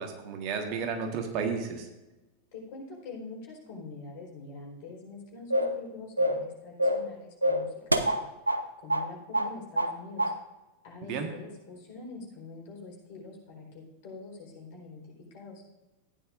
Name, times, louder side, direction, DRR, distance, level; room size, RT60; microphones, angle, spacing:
voice 1, 0.0-1.9 11.1-11.3, right 5 dB, 40° right, 4 dB, 1.4 m, -32 dB
voice 2, 2.5-8.3 8.8-10.3 10.8-15.0 15.3-15.6, left 3 dB, 45° left, -2 dB, 4.1 m, -45 dB
sound 1, 5.5-5.8 6.2-6.5 6.8-7.1 7.4-8.6 8.9-9.1 9.3-9.9 10.2-10.4, equal, 85° right, 0.6 m, -26 dB
14.5 x 9.8 x 2.6 m, 1.0 s
figure-of-eight pair, 90°, 0 cm